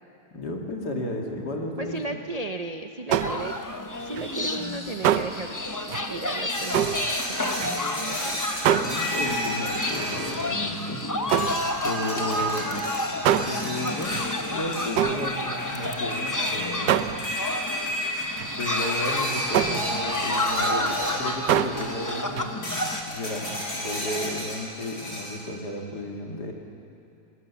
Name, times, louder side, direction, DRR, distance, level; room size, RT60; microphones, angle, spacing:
voice 1, 0.3-2.2 8.8-11.0 11.8-12.7 13.3-14.1 14.5-17.2 18.6-26.5, left 1 dB, 75° left, 1 dB, 2.7 m, -33 dB
voice 2, 1.8-5.6 6.1-8.4, right 2 dB, 65° right, 5 dB, 0.3 m, -35 dB
sound 1, 3.1-3.7 4.0-8.2 8.5-9.7 10.1-10.4 10.7-16.4 16.8-17.6 17.8-18.0 18.4-18.6 19.0-19.2 19.5-22.0 22.2-22.5, right 10 dB, 80° right, 1.3 m, -28 dB
sound 2, 3.2-23.0, left 2 dB, 20° left, 0.5 m, -31 dB
sound 3, 6.5-10.9 11.3-21.4 21.8-22.3 22.6-25.4, equal, 45° left, 4.7 m, -32 dB
22.5 x 19.0 x 7.1 m, 2.6 s
omnidirectional pair, 1.8 m